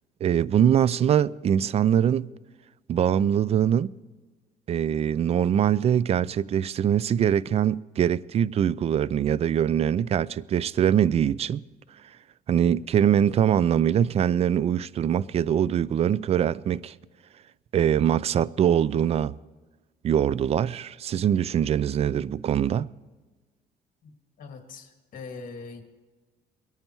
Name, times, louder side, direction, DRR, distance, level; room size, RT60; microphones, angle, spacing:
voice 1, 0.2-2.3 2.9-3.9 4.7-11.6 12.5-16.9 17.7-19.4 20.0-22.9, right 9 dB, 40° right, 0.4 m, -23 dB
voice 2, 24.4-25.8, left 4 dB, 55° left, 2.2 m, -41 dB
22.5 x 9.0 x 4.6 m
cardioid pair, 110°, 17 cm